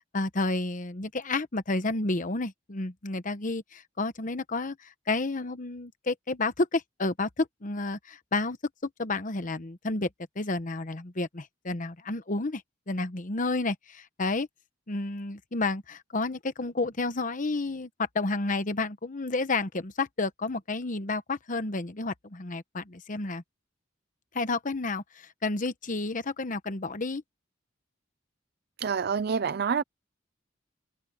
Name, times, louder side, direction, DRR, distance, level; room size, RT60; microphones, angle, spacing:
voice 1, 0.1-8.6 8.8-10.1 10.4-12.6 12.9-14.5 14.9-23.4 24.3-27.2, left 3 dB, 45° left, 1.1 m, -31 dB
voice 2, 28.8-29.8, right 6 dB, 55° right, 0.5 m, -27 dB
head